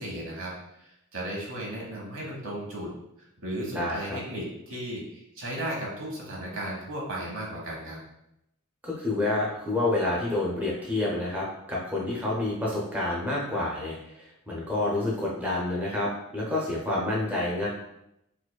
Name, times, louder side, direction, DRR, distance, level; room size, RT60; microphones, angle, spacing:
voice 1, 0.0-2.9 3.2-8.0, right 1 dB, 65° right, -2 dB, 1.0 m, -35 dB
voice 2, 3.7-4.2 8.8-17.7, left 2 dB, 10° right, -5 dB, 0.5 m, -28 dB
4.6 x 2.2 x 2.2 m, 0.83 s
head